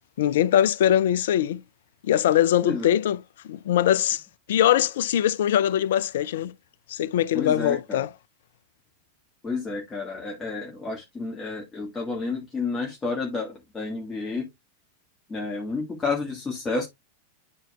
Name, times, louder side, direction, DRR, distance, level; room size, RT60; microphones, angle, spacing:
voice 1, 0.2-1.6 2.0-3.2 3.4-4.2 4.5-6.5 6.9-8.1, left 11 dB, 55° left, 0.3 m, -22 dB
voice 2, 7.3-8.1 9.4-14.5 15.3-16.9, left 4 dB, 15° left, 1.5 m, -30 dB
10.5 x 4.4 x 2.3 m
figure-of-eight pair, 90°, 0 cm